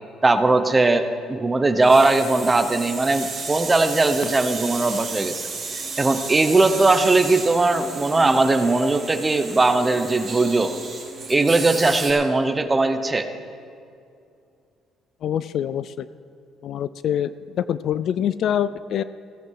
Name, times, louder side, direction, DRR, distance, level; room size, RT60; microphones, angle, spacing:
voice 1, 0.2-5.4 6.0-10.7 11.3-13.3, right 2 dB, 15° right, 8 dB, 0.9 m, -19 dB
sound 1, 1.8-12.1, right 4 dB, 35° right, 4.9 m, -33 dB
voice 2, 15.2-16.1 16.6-19.0, left 9 dB, 55° left, 16 dB, 0.3 m, -25 dB
15.5 x 15.5 x 4.8 m, 2.4 s
cardioid pair, 145°, 0 cm